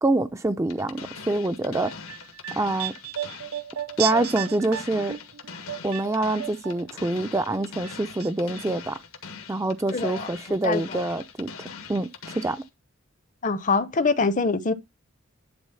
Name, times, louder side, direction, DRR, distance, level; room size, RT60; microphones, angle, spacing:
voice 1, 0.0-1.9 2.6-2.9 4.0-5.1 5.8-9.0 9.5-12.1 12.3-12.6, right 2 dB, 15° right, 0.4 m, -26 dB
sound 1, 0.7-12.7, left 5 dB, 85° left, 1.6 m, -42 dB
sound 2, 1.8-7.1 7.4-8.3 8.6-8.7, right 11 dB, 85° right, 0.5 m, -34 dB
voice 2, 9.9-11.0 13.4-14.7, left 4 dB, 35° left, 0.7 m, -25 dB
10.5 x 4.0 x 5.6 m
head